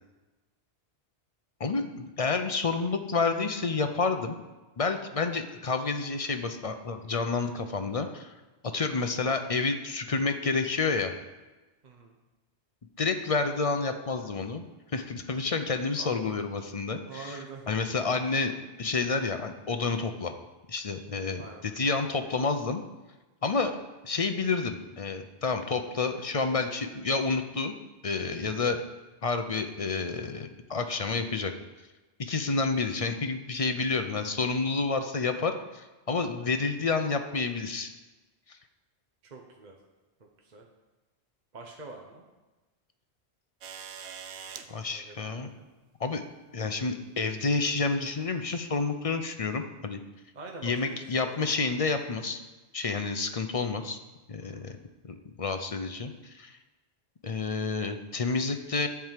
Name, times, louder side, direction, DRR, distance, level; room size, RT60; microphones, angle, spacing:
voice 1, 1.6-4.4 4.8-8.3 8.7-11.1 13.0-14.6 14.9-17.4 17.7-20.4 20.7-22.8 23.4-23.7 24.0-27.8 28.0-28.8 29.2-31.5 32.2-37.9 38.5-38.6 44.7-45.5 46.0-46.2 46.5-50.0 50.6-52.4 52.7-54.0 54.3-54.8 55.0-56.6 57.2-58.9, left 4 dB, 40° left, 7 dB, 0.6 m, -29 dB
voice 2, 11.8-12.1 15.9-16.5 17.1-17.7 21.4-21.7 39.2-39.8 40.4-40.7 41.5-42.3 44.6-45.7 50.3-51.5 54.4-54.7, right 3 dB, 40° right, 1 dB, 1.0 m, -45 dB
sound 1, 43.6-44.7 46.1-46.2 47.5-47.8 48.7-48.8, right 7 dB, 75° right, 1.0 m, -43 dB
11.0 x 4.7 x 7.4 m, 1.2 s
omnidirectional pair, 1.1 m